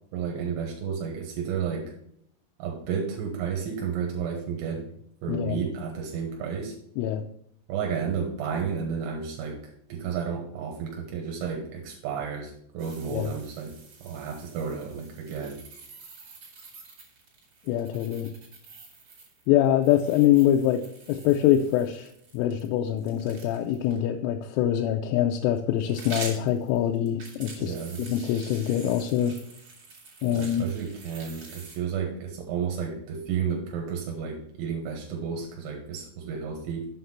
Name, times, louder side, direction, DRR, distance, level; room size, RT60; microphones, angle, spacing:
voice 1, 0.1-1.9 2.6-4.9 5.2-6.8 7.7-15.6 27.6-28.0 30.2-36.9, right 6 dB, 75° right, 2 dB, 3.3 m, -32 dB
sound 1, 12.8-24.0 25.5-31.8, right 4 dB, 45° right, 2.1 m, -46 dB
voice 2, 17.7-18.3 19.5-20.8 21.1-22.1 22.3-29.4 30.2-30.6, left 11 dB, 85° left, 3 dB, 3.0 m, -24 dB
7.8 x 5.8 x 5.7 m, 0.70 s
omnidirectional pair, 5.9 m